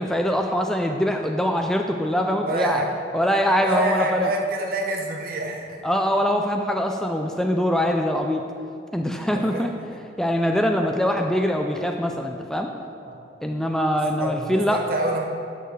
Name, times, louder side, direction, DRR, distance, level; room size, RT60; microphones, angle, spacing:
voice 1, 0.0-2.8 3.1-4.3 5.8-8.5 8.9-9.7 10.2-12.7 13.4-14.8, equal, 5° left, 3 dB, 0.3 m, -23 dB
voice 2, 2.4-2.9 3.6-5.8 9.3-10.0 13.1-13.2 14.2-15.3, right 1 dB, 55° right, 1 dB, 1.0 m, -27 dB
11.0 x 6.7 x 3.3 m, 2.5 s
head